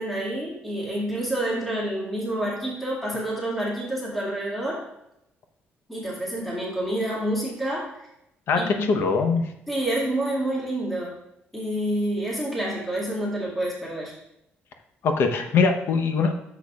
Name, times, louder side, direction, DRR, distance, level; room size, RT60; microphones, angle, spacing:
voice 1, 0.0-4.8 5.9-8.1 8.6-9.1 9.7-11.2 11.5-14.1, right 1 dB, 5° left, -6 dB, 2.1 m, -28 dB
voice 2, 8.5-9.4 15.0-16.3, left 4 dB, 60° left, 6 dB, 0.9 m, -22 dB
10.5 x 7.0 x 2.4 m, 0.82 s
cardioid pair, 145°, 4 cm